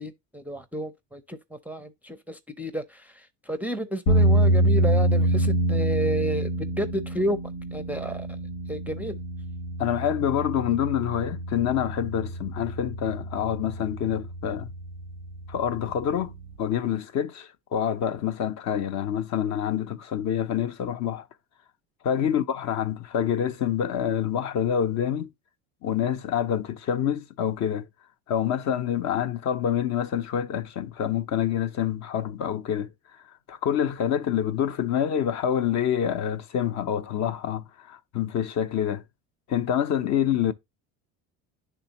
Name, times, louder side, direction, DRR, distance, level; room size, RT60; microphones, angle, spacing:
voice 1, 0.0-1.4 1.7-6.5 6.8-7.4 7.7-8.3 8.7-9.2 22.2-22.3, right 1 dB, 5° right, 0.5 m, -31 dB
sound 1, 4.1-16.6, right 1 dB, 90° left, 1.4 m, -26 dB
voice 2, 9.8-14.7 15.5-21.2 22.0-25.3 25.8-27.9 28.3-32.9 33.5-39.0 39.5-40.5, left 9 dB, 45° left, 0.7 m, -27 dB
9.9 x 3.5 x 2.8 m
supercardioid pair, 100°, 38 cm